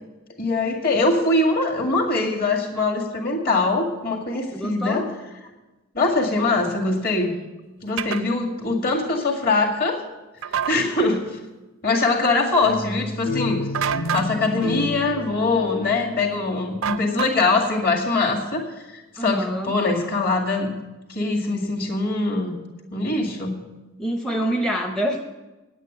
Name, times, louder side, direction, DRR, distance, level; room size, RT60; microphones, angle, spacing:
voice 1, 0.4-5.1 5.9-7.4 7.8-10.0 10.5-11.4 11.8-20.7 21.1-22.5 22.9-23.6, left 3 dB, 45° left, 0 dB, 2.1 m, -23 dB
voice 2, 4.5-5.1 19.2-19.8 24.0-25.2, right 1 dB, 5° left, 3 dB, 0.6 m, -26 dB
sound 1, 8.0-8.2 10.4-10.8 13.7-14.3 16.8-17.6, right 8 dB, 70° right, 0.5 m, -27 dB
sound 2, 12.6-17.5, left 2 dB, 65° left, 1.8 m, -31 dB
9.2 x 9.1 x 8.0 m, 1.1 s
head